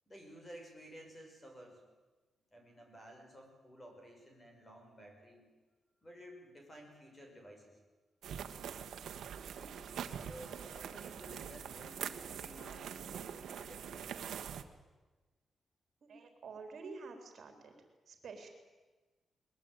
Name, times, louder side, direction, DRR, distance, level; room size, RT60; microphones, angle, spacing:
voice 1, 0.1-1.8 2.5-5.5 6.0-7.8 9.5-14.3, equal, 15° left, 2 dB, 6.0 m, -54 dB
sound 1, 8.2-14.6, right 8 dB, 80° right, 1.4 m, -44 dB
voice 2, 16.0-17.7 18.1-18.5, right 4 dB, 55° right, 5 dB, 3.9 m, -49 dB
21.5 x 21.0 x 9.2 m, 1.3 s
wide cardioid pair, 150°, 0 cm